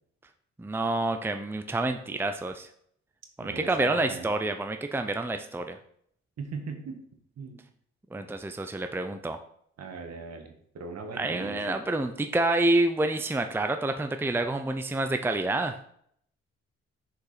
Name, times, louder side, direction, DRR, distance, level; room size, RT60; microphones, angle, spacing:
voice 1, 0.6-2.7 3.4-5.8 8.1-9.4 11.1-15.8, right 2 dB, 10° right, 7 dB, 0.6 m, -28 dB
voice 2, 3.4-4.3 6.4-7.0 7.4-7.6 9.8-11.8, right 4 dB, 60° right, 4 dB, 1.8 m, -39 dB
6.6 x 5.1 x 5.1 m, 0.66 s
supercardioid pair, 65°, 29 cm